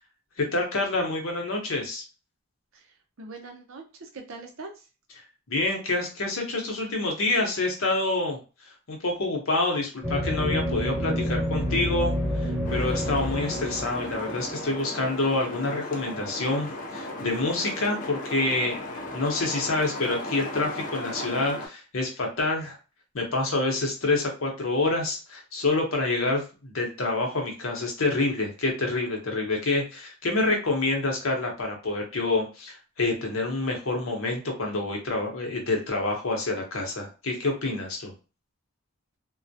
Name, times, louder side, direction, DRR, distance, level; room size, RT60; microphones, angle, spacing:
voice 1, 0.4-2.0 5.5-8.4 8.9-12.1 12.4-22.8 23.1-38.1, left 2 dB, 60° left, 1 dB, 0.8 m, -27 dB
voice 2, 2.7-4.8, right 3 dB, 65° right, 3 dB, 0.6 m, -43 dB
sound 1, 10.0-14.8, equal, 10° right, 1.1 m, -28 dB
sound 2, 12.6-21.7, left 1 dB, 35° left, 0.4 m, -36 dB
2.2 x 2.0 x 2.7 m, 0.32 s
head